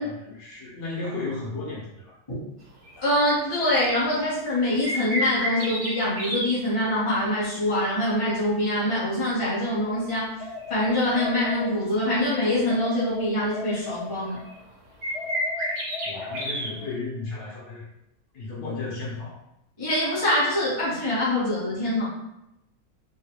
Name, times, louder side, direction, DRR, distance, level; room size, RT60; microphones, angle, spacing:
voice 1, 0.0-2.2 16.0-17.9 18.3-19.4, left 3 dB, 90° left, -6 dB, 1.4 m, -34 dB
sound 1, 2.8-3.0 3.4-3.6 3.9-4.0 4.7-6.5 10.6-10.7 11.4-12.4 12.7-12.8 13.2-13.3 13.5-14.6 15.0-16.7, equal, 75° right, 1.5 m, -30 dB
voice 2, 3.0-10.3 10.7-14.4 19.8-22.1, left 1 dB, 25° left, -10 dB, 0.9 m, -24 dB
sound 2, 10.4-12.2 12.7-14.6 15.1-17.0, left 5 dB, 70° left, 1.1 m, -38 dB
3.7 x 2.2 x 2.9 m, 0.84 s
omnidirectional pair, 1.7 m